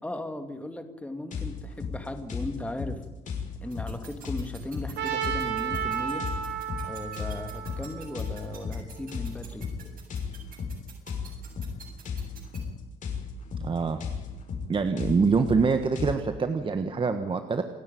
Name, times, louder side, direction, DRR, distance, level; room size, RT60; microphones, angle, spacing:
voice 1, 0.0-3.0 3.6-6.3 6.8-9.6, left 1 dB, 10° left, 7 dB, 2.5 m, -37 dB
sound 1, 1.3-16.2, left 5 dB, 50° left, 6.0 m, -36 dB
sound 2, 3.7-12.6, right 8 dB, 55° right, 8.0 m, -47 dB
Trumpet, 5.0-9.0, right 9 dB, 80° right, 3.5 m, -33 dB
voice 2, 13.6-14.0 14.7-17.6, right 5 dB, 30° right, 8 dB, 1.4 m, -25 dB
28.0 x 10.0 x 9.3 m, 1.2 s
cardioid pair, 110°, 17 cm